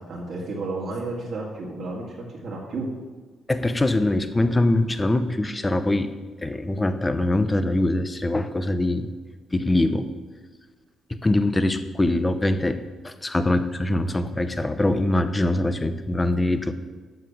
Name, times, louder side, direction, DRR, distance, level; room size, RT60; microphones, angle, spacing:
voice 1, 0.0-2.9, right 2 dB, 65° right, -5 dB, 2.2 m, -32 dB
voice 2, 3.5-6.1 6.4-9.1 9.5-10.1 11.1-12.8 13.0-16.7, left 1 dB, 20° left, 10 dB, 0.7 m, -23 dB
8.2 x 6.8 x 6.1 m, 1.4 s
cardioid pair, 90°, 0 cm